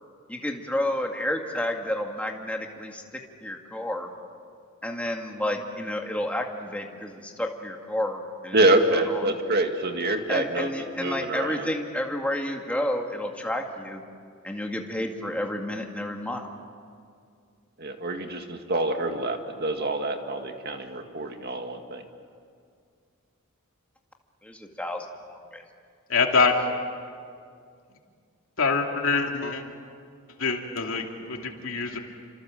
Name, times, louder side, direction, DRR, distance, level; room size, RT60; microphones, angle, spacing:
voice 1, 0.3-3.0 3.4-4.1 4.8-8.6 8.9-9.3 10.3-14.0 14.4-16.5 24.4-25.6, left 1 dB, 5° left, 2 dB, 2.1 m, -30 dB
voice 2, 8.5-10.7 11.0-11.6 17.8-22.0, right 2 dB, 45° right, 5 dB, 2.0 m, -26 dB
voice 3, 26.1-26.5 28.6-29.6 30.4-32.0, left 4 dB, 70° left, 2 dB, 2.8 m, -24 dB
29.5 x 26.0 x 7.7 m, 2.2 s
head